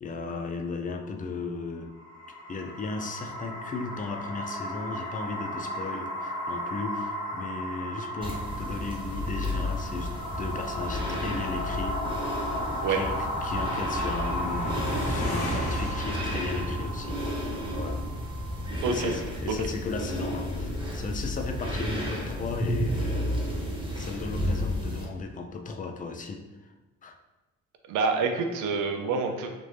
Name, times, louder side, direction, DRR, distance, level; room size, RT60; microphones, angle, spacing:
voice 1, 0.0-1.9 2.5-12.1 12.9-18.1 18.8-23.6 23.9-26.5 27.0-27.2, left 4 dB, 25° left, 5 dB, 0.4 m, -36 dB
sound 1, 1.9-19.0, equal, 75° left, 0.8 m, -35 dB
sound 2, 8.2-25.0, left 1 dB, 15° right, 1.1 m, -32 dB
sound 3, 12.5-17.7, equal, 50° left, 1.0 m, -35 dB
voice 2, 18.8-19.2 27.9-29.5, right 4 dB, 85° right, 5 dB, 0.6 m, -27 dB
3.4 x 2.7 x 3.2 m, 1.1 s
cardioid pair, 90°, 30 cm